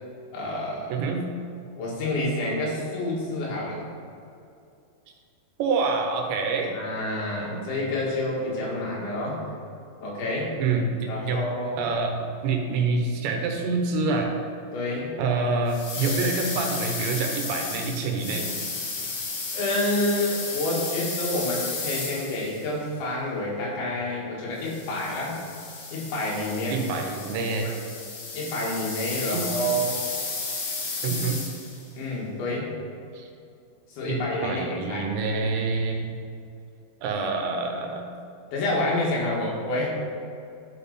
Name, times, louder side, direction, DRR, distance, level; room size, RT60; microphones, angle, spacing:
voice 1, 0.3-1.0 1.8-3.9 6.7-9.4 10.0-10.6 11.1-11.8 14.7-15.2 19.5-25.4 25.9-26.9 27.6-27.8 28.3-30.0 31.9-32.8 33.9-35.1 38.5-39.9, left 1 dB, 90° left, -5 dB, 4.5 m, -28 dB
voice 2, 0.9-1.2 5.6-6.7 10.6-11.4 11.8-14.3 15.2-18.5 26.7-27.7 29.3-29.5 31.0-31.4 33.1-33.2 34.1-34.2 34.4-36.1 37.0-38.1, right 4 dB, 80° right, 2 dB, 3.2 m, -26 dB
sound 1, 15.7-22.7 24.6-31.8, left 4 dB, 65° left, 1.5 m, -33 dB
12.0 x 5.6 x 4.2 m, 2.5 s
omnidirectional pair, 5.1 m